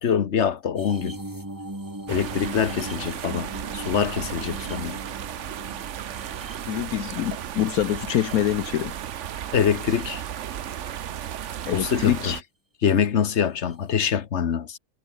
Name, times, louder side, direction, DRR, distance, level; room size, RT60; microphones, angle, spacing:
voice 1, 0.0-1.2 2.1-5.0 9.5-10.2 11.7-12.3 12.8-14.8, left 7 dB, 50° left, 1.3 m, -24 dB
sound 1, 0.8-9.1 9.7-10.4 11.6-12.0 13.7-13.8, right 1 dB, 10° right, 2.5 m, -40 dB
sound 2, 2.1-12.4, right 10 dB, 55° right, 1.0 m, -34 dB
voice 2, 6.7-9.0 11.6-12.4, left 12 dB, 70° left, 1.1 m, -25 dB
omnidirectional pair, 1.6 m